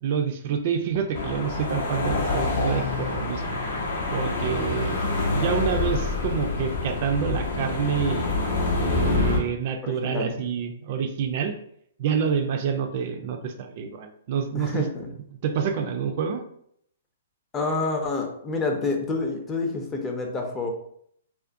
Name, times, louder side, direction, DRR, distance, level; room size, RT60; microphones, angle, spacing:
voice 1, 0.0-3.6 4.1-5.0 5.3-8.3 8.8-11.5 12.0-14.8 15.4-16.4, right 7 dB, 50° right, 5 dB, 0.3 m, -27 dB
sound 1, 1.1-9.4, left 3 dB, 60° left, 0.6 m, -26 dB
voice 2, 9.8-10.3 14.5-15.1 17.5-20.7, left 3 dB, 20° left, 2 dB, 0.5 m, -28 dB
2.4 x 2.1 x 2.5 m, 0.67 s
hypercardioid pair, 125°, 0 cm